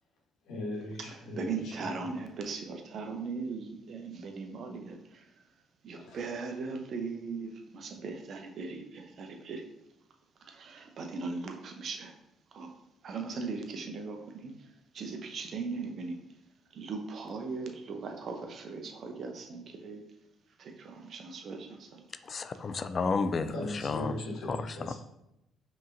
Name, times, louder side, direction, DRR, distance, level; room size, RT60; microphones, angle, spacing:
voice 1, 0.4-1.9 5.9-6.2 23.5-24.9, left 1 dB, 70° left, -2 dB, 1.2 m, -38 dB
voice 2, 1.0-5.5 5.8-9.6 10.4-12.2 12.5-12.7 13.0-16.2 16.7-20.0 20.6-22.0, right 4 dB, 55° right, 4 dB, 0.7 m, -39 dB
voice 3, 22.3-23.5 23.8-24.2 24.5-24.6 24.9-25.0, left 4 dB, 45° left, 11 dB, 0.3 m, -31 dB
5.4 x 3.0 x 2.6 m, 0.85 s
hypercardioid pair, 50°, 0 cm